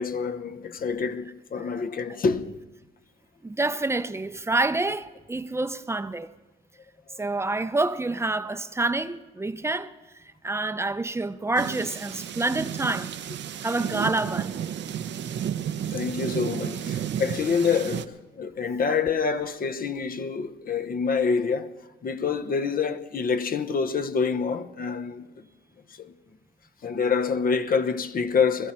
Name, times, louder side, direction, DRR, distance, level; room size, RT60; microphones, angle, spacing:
voice 1, 0.0-2.6 15.8-21.7 22.0-25.3 26.0-26.1 26.8-28.7, left 5 dB, 45° left, 1.0 m, -27 dB
voice 2, 3.4-6.3 7.2-9.9 10.4-13.1 13.6-14.5, right 2 dB, 15° right, 0.7 m, -27 dB
sound 1, 11.6-18.1, right 9 dB, 65° right, 0.8 m, -32 dB
21.0 x 13.5 x 4.4 m
cardioid pair, 90°, 20 cm